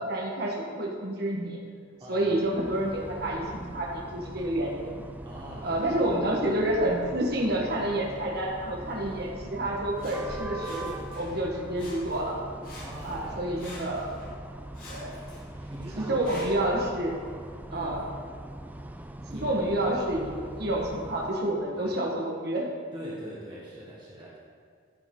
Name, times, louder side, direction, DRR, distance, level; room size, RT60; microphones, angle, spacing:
voice 1, 0.0-1.6 2.1-5.0 5.6-12.4 13.0-14.1 14.9-15.2 16.0-17.1 17.7-18.0 19.3-22.7, right 1 dB, 55° right, -2 dB, 1.4 m, -29 dB
sound 1, 2.2-21.3, right 1 dB, 10° right, 0.4 m, -42 dB
voice 2, 5.2-5.8 12.7-14.3 15.7-16.3 17.7-17.9 19.3-19.5 21.7-21.9 22.9-24.4, equal, 25° right, -6 dB, 1.6 m, -42 dB
Sawing, 10.0-11.4 11.7-12.4 12.6-14.3 14.7-16.7 17.4-17.5, left 1 dB, 50° left, 2.5 m, -47 dB
13.5 x 6.2 x 3.8 m, 2.1 s
head